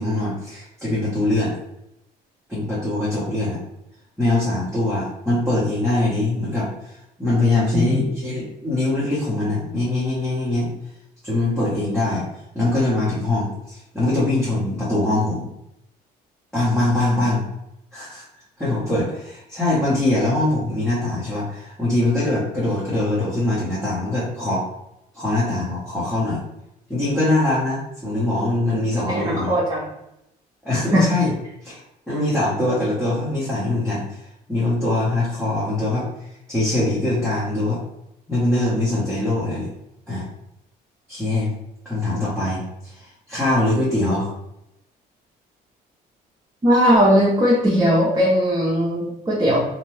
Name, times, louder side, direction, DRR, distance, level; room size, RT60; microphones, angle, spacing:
voice 1, 0.0-1.6 2.5-3.6 4.2-10.7 11.2-12.2 12.5-15.5 16.5-17.4 17.9-18.2 18.6-24.6 25.1-26.4 26.9-29.6 30.6-31.3 31.6-31.8 32.1-34.0 34.5-36.1 36.5-37.8 38.3-39.7 40.1-40.2 41.1-41.5 41.8-44.3, left 2 dB, 5° left, -11 dB, 1.0 m, -22 dB
voice 2, 29.1-29.9 30.9-31.1 46.6-49.6, equal, 20° right, -6 dB, 0.7 m, -18 dB
2.7 x 2.2 x 3.2 m, 0.83 s
cardioid pair, 110°, 17 cm